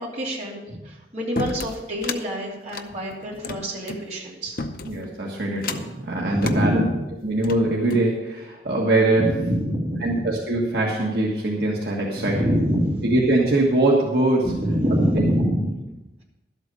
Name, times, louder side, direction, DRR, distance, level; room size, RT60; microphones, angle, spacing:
voice 1, 0.0-4.8 6.3-6.9 9.2-10.2 12.1-13.1 14.4-15.7, equal, 40° right, -4 dB, 3.0 m, -25 dB
sound 1, 1.4-2.2 2.7-4.0 4.6-5.1 5.6-6.0 6.4-6.6 7.2-8.1, left 3 dB, 55° left, 0.7 m, -32 dB
voice 2, 4.8-6.8 7.2-9.2 10.0-12.5 13.0-14.5 15.1-15.3, right 2 dB, 65° right, -3 dB, 1.6 m, -22 dB
12.0 x 8.2 x 5.3 m, 1.0 s
head